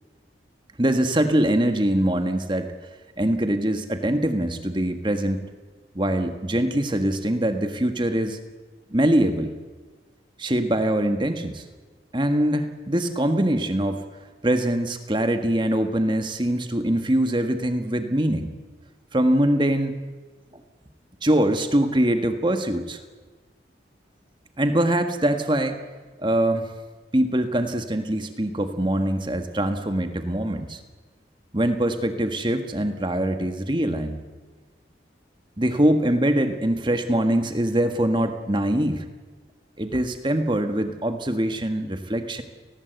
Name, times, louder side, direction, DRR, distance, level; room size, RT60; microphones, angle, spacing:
voice 1, 0.8-2.7 3.2-5.5 5.9-8.4 8.9-9.5 10.4-11.6 12.1-14.0 14.4-18.5 19.1-20.0 21.2-23.0 24.6-25.8 26.2-26.7 27.1-30.8 31.5-34.2 35.6-39.1 39.8-42.4, right 1 dB, 25° right, 7 dB, 1.6 m, -23 dB
30.0 x 19.5 x 8.1 m, 1.4 s
head